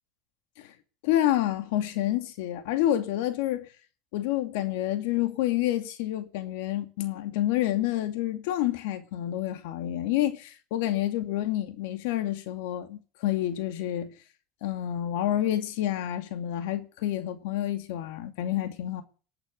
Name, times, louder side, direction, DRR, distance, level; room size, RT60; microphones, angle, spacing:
voice 1, 1.0-3.7 4.1-14.1 14.6-19.0, left 13 dB, 80° left, 2.5 m, -28 dB
20.5 x 8.8 x 6.9 m
supercardioid pair, 105°, 0 cm